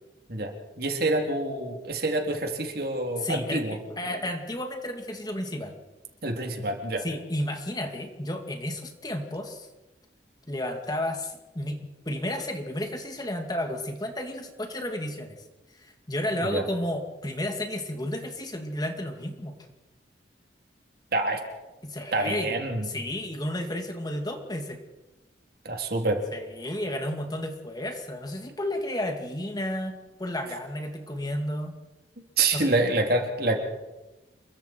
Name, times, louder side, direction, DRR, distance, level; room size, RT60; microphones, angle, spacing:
voice 1, 0.3-3.8 6.2-7.0 16.5-16.6 21.1-21.4 22.1-22.8 25.6-26.2 32.4-33.6, right 2 dB, 60° right, 2 dB, 3.4 m, -27 dB
voice 2, 3.2-3.6 4.0-5.7 7.0-9.7 10.5-11.8 12.1-15.4 15.7-19.5 21.8-22.5 22.8-24.8 26.3-29.9 30.2-31.7 32.5-32.7, left 1 dB, 20° left, 4 dB, 2.3 m, -32 dB
28.5 x 23.0 x 4.6 m, 1.1 s
head